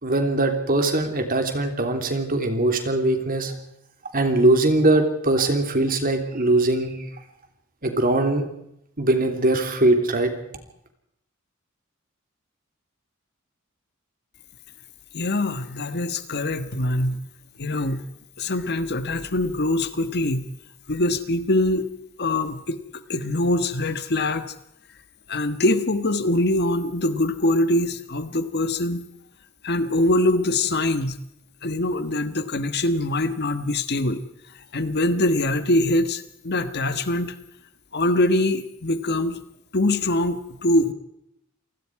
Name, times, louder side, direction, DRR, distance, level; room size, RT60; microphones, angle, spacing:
voice 1, 0.0-3.5 4.1-7.1 7.8-8.5 9.0-10.3, right 2 dB, 45° right, 5 dB, 3.3 m, -21 dB
voice 2, 15.1-17.2 17.6-18.0 18.4-20.5 20.9-21.9 22.2-24.5 25.3-29.0 29.6-31.2 31.6-34.2 34.7-37.4 37.9-39.4 39.7-40.9, left 1 dB, 50° left, 11 dB, 1.4 m, -23 dB
28.0 x 19.5 x 4.8 m, 0.78 s
head